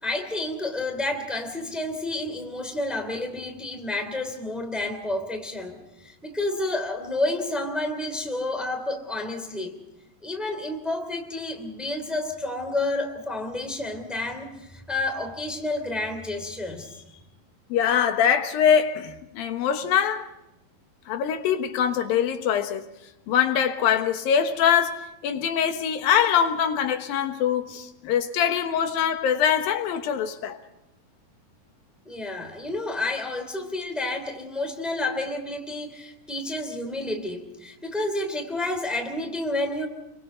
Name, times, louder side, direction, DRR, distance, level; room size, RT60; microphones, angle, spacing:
voice 1, 0.0-5.7 6.0-9.7 10.2-17.0 32.0-39.9, left 2 dB, ahead, 2.6 m, -30 dB
voice 2, 17.7-20.3 21.1-22.9 23.3-30.6, left 8 dB, 85° left, 3.1 m, -23 dB
29.5 x 23.5 x 4.4 m
omnidirectional pair, 4.0 m